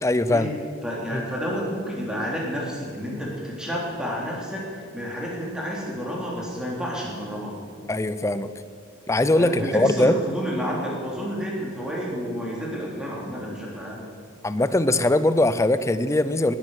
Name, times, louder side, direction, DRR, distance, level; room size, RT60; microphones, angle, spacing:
voice 1, 0.0-0.5 1.1-1.2 7.9-8.5 9.1-10.2 14.4-16.6, left 1 dB, 15° left, 13 dB, 0.5 m, -21 dB
voice 2, 0.8-7.5 9.3-14.0, equal, 5° right, -4 dB, 3.2 m, -30 dB
19.5 x 9.0 x 6.4 m, 2.3 s
head